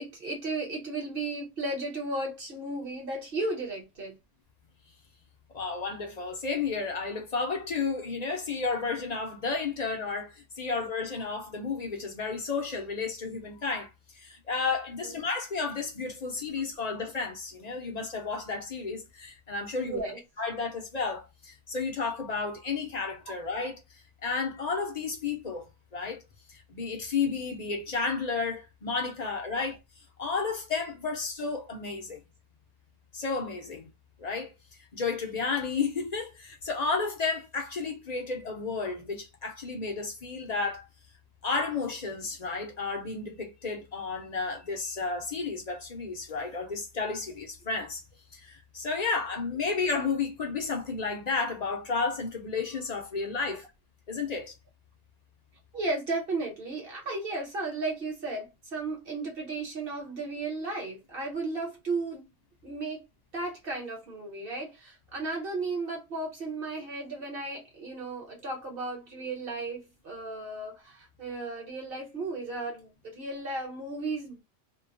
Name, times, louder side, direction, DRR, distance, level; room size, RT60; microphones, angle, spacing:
voice 1, 0.0-4.2 15.0-15.2 19.8-20.2 29.5-29.6 53.5-53.6 55.7-62.3 62.6-63.0 63.3-74.4, right 2 dB, 50° right, 1.4 m, -34 dB
voice 2, 5.5-20.0 20.4-26.2 26.5-29.8 30.2-32.2 33.1-33.9 34.2-34.5 34.9-40.9 41.4-48.0 48.3-53.7 54.1-54.5, left 4 dB, 45° left, 0.6 m, -32 dB
2.8 x 2.2 x 2.5 m
omnidirectional pair, 1.3 m